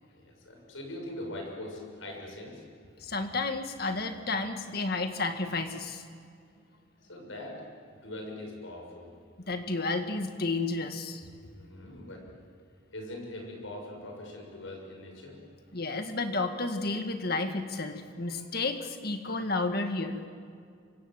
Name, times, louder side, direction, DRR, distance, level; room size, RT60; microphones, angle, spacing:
voice 1, 0.1-2.9 7.0-9.2 11.6-12.3 12.9-15.8 18.2-18.4, left 1 dB, 75° left, 2 dB, 6.7 m, -42 dB
voice 2, 3.0-6.0 9.5-11.2 15.7-20.2, left 3 dB, 45° left, 6 dB, 1.9 m, -31 dB
28.5 x 25.5 x 7.7 m, 2.3 s
head